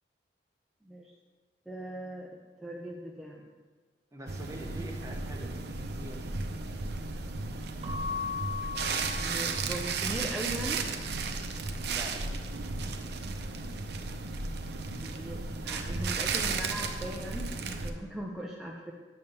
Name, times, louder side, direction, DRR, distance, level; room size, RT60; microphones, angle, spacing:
voice 1, 1.7-2.3 2.6-3.4 9.2-10.8 15.0-18.9, right 1 dB, 5° right, -3 dB, 0.6 m, -39 dB
voice 2, 4.1-6.6 11.8-12.2, right 1 dB, 20° right, 1 dB, 1.0 m, -45 dB
sound 1, 4.3-17.9, right 4 dB, 65° right, 0.6 m, -34 dB
Keyboard (musical) / Bell, 7.8-10.2, left 5 dB, 40° right, 1.6 m, -38 dB
9.2 x 3.6 x 6.8 m, 1.4 s
head